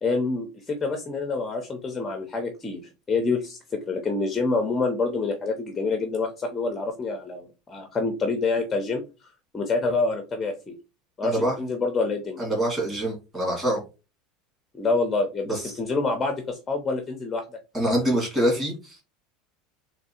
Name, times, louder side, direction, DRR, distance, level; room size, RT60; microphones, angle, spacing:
voice 1, 0.0-9.0 9.5-10.7 11.2-12.4 14.7-17.4, left 3 dB, 15° left, 4 dB, 0.5 m, -27 dB
voice 2, 11.2-11.6 12.4-13.8 15.5-15.6 17.7-19.0, equal, 20° right, -2 dB, 2.1 m, -25 dB
3.5 x 3.0 x 4.2 m, 0.30 s
supercardioid pair, 170°, 0 cm